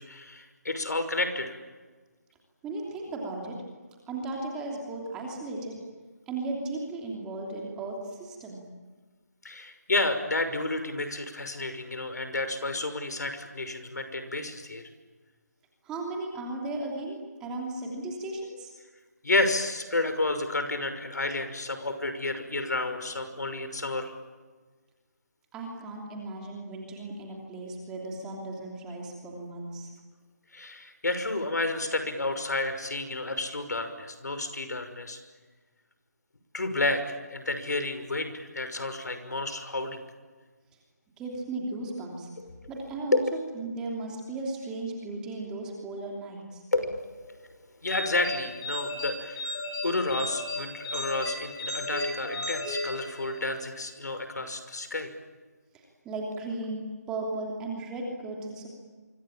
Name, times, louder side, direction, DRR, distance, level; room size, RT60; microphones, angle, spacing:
voice 1, 0.0-1.6 9.4-14.8 19.2-24.1 30.5-35.2 36.5-40.0 42.4-42.5 43.1-43.2 46.7-47.2 47.8-55.1, left 2 dB, 75° left, 9 dB, 5.9 m, -30 dB
voice 2, 2.6-3.6 4.1-5.7 6.3-8.6 15.8-18.7 25.5-29.9 41.2-42.3 42.7-43.2 43.5-46.6 55.7-58.7, right 2 dB, 5° right, 0 dB, 3.0 m, -36 dB
sound 1, 47.9-53.6, left 1 dB, 15° left, 7.5 m, -35 dB
27.0 x 25.0 x 8.9 m, 1.4 s
figure-of-eight pair, 175°, 9 cm